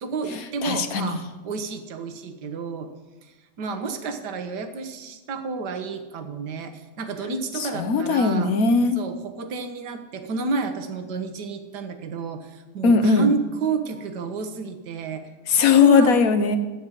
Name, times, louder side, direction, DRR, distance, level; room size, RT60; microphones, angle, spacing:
voice 1, 0.0-2.9 3.2-8.5 9.0-16.1, right 4 dB, 75° right, 7 dB, 1.7 m, -30 dB
voice 2, 0.6-1.2 7.8-9.0 12.8-13.3 15.5-16.6, left 5 dB, 60° left, 9 dB, 1.4 m, -18 dB
14.0 x 9.3 x 7.4 m, 1.2 s
omnidirectional pair, 1.8 m